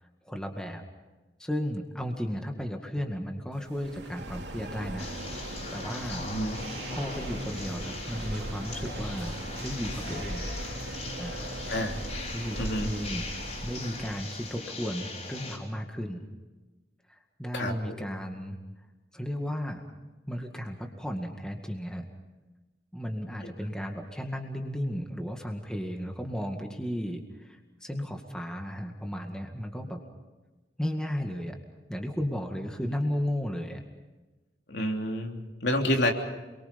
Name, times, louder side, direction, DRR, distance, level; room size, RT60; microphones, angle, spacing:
voice 1, 0.3-0.8 1.4-5.1 5.7-6.2 6.9-10.5 11.2-11.4 12.3-13.2 13.6-16.2 17.1-18.6 19.1-19.8 20.3-22.0 22.9-30.0 30.8-31.6 31.9-33.8, equal, 5° left, 3 dB, 2.0 m, -34 dB
sound 1, 3.6-14.5, right 1 dB, 85° right, 2.9 m, -38 dB
sound 2, 5.0-15.6, left 3 dB, 40° left, 4.8 m, -41 dB
voice 2, 6.2-6.6 11.7-12.0 12.6-12.9 17.5-17.9 23.4-23.5 34.7-36.1, left 1 dB, 80° left, 2 dB, 3.1 m, -29 dB
28.5 x 22.5 x 5.3 m, 1.2 s
head